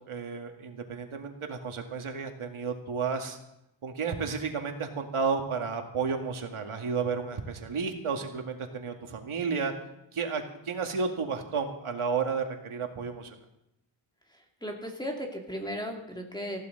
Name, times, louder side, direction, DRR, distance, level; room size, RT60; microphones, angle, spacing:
voice 1, 0.0-3.4 3.8-9.7 10.1-13.4, right 5 dB, 85° right, 4 dB, 2.1 m, -32 dB
voice 2, 14.6-16.6, equal, 10° left, 1 dB, 2.5 m, -35 dB
19.5 x 15.5 x 4.0 m, 0.83 s
wide cardioid pair, 125°, 49 cm